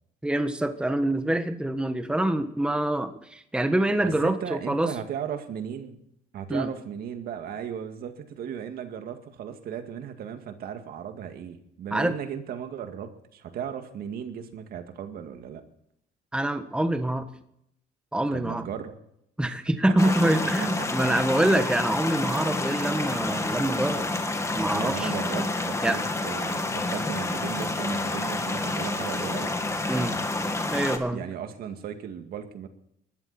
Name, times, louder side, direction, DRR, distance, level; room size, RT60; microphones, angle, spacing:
voice 1, 0.2-4.9 6.5-6.7 11.9-12.2 16.3-17.3 18.1-18.6 19.4-24.1 24.5-25.1 25.8-26.0 29.9-30.1 30.7-31.2, right 1 dB, 5° right, 8 dB, 1.3 m, -25 dB
voice 2, 4.0-6.0 6.3-15.6 18.3-18.9 20.0-20.1 20.8-21.1 24.7-29.5 31.1-32.7, right 8 dB, 65° right, 7 dB, 2.2 m, -36 dB
sound 1, 20.0-31.0, left 2 dB, 15° left, 2.1 m, -29 dB
20.0 x 14.0 x 4.3 m, 0.73 s
cardioid pair, 110°, 17 cm